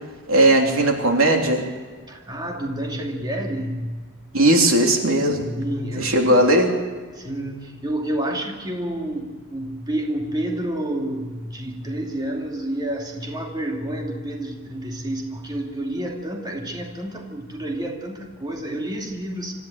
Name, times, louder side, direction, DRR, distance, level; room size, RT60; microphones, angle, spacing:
voice 1, 0.3-1.6 4.3-5.5 5.9-6.7, right 1 dB, 75° right, 2 dB, 3.2 m, -17 dB
voice 2, 2.1-4.0 5.4-6.2 7.2-19.5, right 1 dB, 20° right, 0 dB, 2.7 m, -29 dB
25.5 x 14.5 x 9.3 m, 1.5 s
head